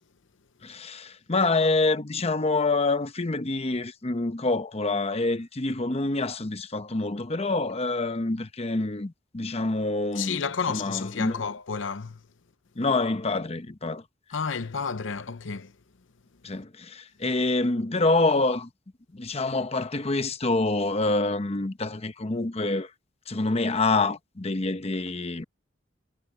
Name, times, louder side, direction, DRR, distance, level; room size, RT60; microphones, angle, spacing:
voice 1, 0.6-10.4 10.7-11.4 12.8-14.0 16.4-18.7 19.1-22.9 23.3-25.4, left 2 dB, 30° left, 0.9 m, -26 dB
voice 2, 10.2-12.2 14.3-15.7, left 5 dB, 70° left, 0.7 m, -31 dB
head